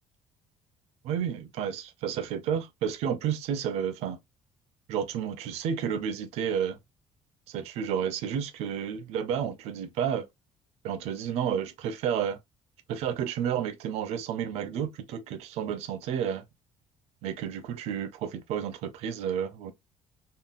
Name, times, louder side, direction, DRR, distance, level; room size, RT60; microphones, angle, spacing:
voice 1, 1.0-4.2 4.9-6.8 7.5-10.3 10.8-12.4 12.9-16.4 17.2-19.7, right 8 dB, 75° right, 0.6 m, -31 dB
3.7 x 2.1 x 2.4 m
cardioid pair, 140°, 11 cm